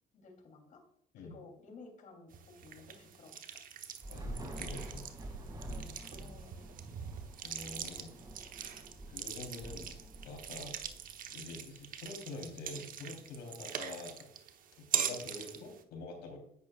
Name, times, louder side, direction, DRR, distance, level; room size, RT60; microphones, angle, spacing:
voice 1, 0.1-0.8 1.2-3.6 5.7-7.2 7.8-8.3, left 3 dB, 50° left, 2 dB, 3.0 m, -55 dB
sound 1, 2.3-15.8, right 9 dB, 55° right, 0.9 m, -42 dB
Thunder / Rain, 4.0-11.5, right 1 dB, 25° right, 2.2 m, -47 dB
voice 2, 4.1-5.1 7.4-8.1 9.1-10.0 10.2-10.8 11.3-14.3 14.9-16.4, left 3 dB, 80° left, 1 dB, 3.4 m, -46 dB
10.5 x 8.7 x 2.4 m, 0.71 s
cardioid pair, 110°, 17 cm